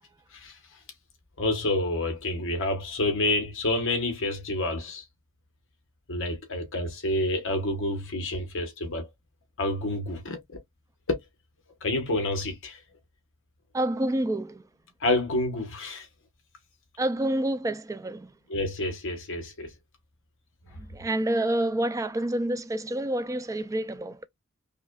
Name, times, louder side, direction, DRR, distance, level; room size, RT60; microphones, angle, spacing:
voice 1, 1.4-5.0 6.1-9.1 9.6-10.6 11.1-11.2 11.8-12.8 15.0-16.1 18.5-19.7, left 2 dB, 60° left, 1.0 m, -28 dB
voice 2, 13.7-14.6 17.0-18.3 20.7-24.3, right 1 dB, 15° right, 0.3 m, -28 dB
5.5 x 2.2 x 2.3 m
head